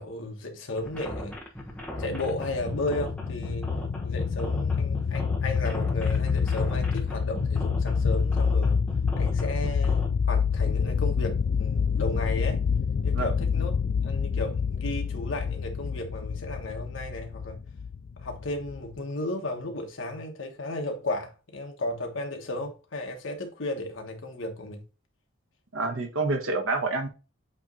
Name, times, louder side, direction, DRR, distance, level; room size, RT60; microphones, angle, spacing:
voice 1, 0.0-1.3 2.0-3.8 4.0-8.8 9.2-12.6 13.0-13.8 14.0-17.6 18.2-24.8, left 2 dB, 70° left, 1.3 m, -34 dB
sound 1, 0.8-10.1, left 1 dB, 5° left, 1.0 m, -38 dB
sound 2, 2.0-19.0, left 6 dB, 55° left, 0.3 m, -27 dB
voice 2, 25.7-27.1, right 3 dB, 80° right, 1.3 m, -27 dB
8.1 x 3.1 x 3.8 m
head